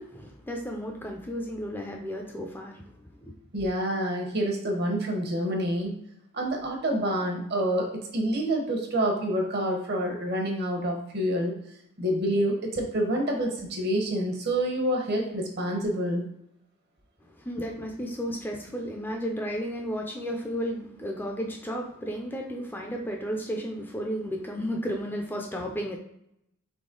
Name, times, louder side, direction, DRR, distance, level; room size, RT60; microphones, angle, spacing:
voice 1, 0.0-2.8 3.2-3.3 17.4-26.0, equal, 10° left, 1 dB, 0.4 m, -33 dB
voice 2, 3.5-6.0 6.3-11.5 12.0-16.3, right 1 dB, 50° right, 1 dB, 0.9 m, -27 dB
4.0 x 3.1 x 3.7 m, 0.77 s
head